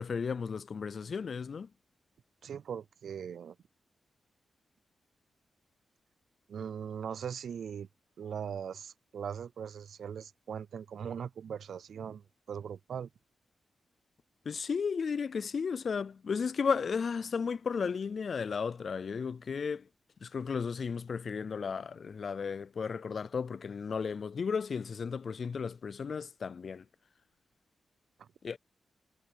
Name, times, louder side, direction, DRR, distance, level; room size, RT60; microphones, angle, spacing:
voice 1, 0.0-1.7 14.5-19.9 20.2-26.8 28.4-28.6, left 6 dB, 60° left, 0.4 m, -34 dB
voice 2, 2.4-3.6 6.5-7.9 8.2-13.1 28.2-28.3, right 8 dB, 80° right, 0.4 m, -40 dB
cardioid pair, 70°, 0 cm